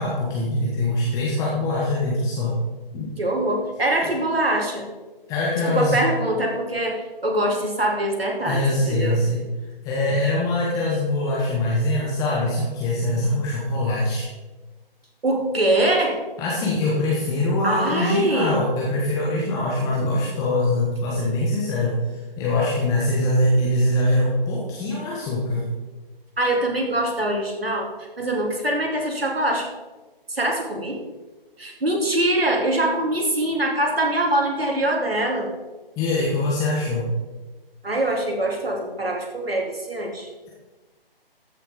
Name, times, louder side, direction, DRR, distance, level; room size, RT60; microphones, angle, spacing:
voice 1, 0.0-2.6 2.9-3.1 5.3-6.0 8.5-9.4 9.8-14.3 16.4-22.0 22.4-25.6 36.0-37.1, left 1 dB, 10° left, -5 dB, 1.3 m, -23 dB
voice 2, 3.2-4.9 5.7-9.2 15.2-16.2 17.6-18.6 26.4-27.9 28.2-29.7 30.3-31.0 31.6-35.5 37.8-40.3, right 1 dB, 75° right, 1 dB, 2.8 m, -23 dB
14.0 x 6.8 x 5.0 m, 1.2 s
figure-of-eight pair, 140°, 30 cm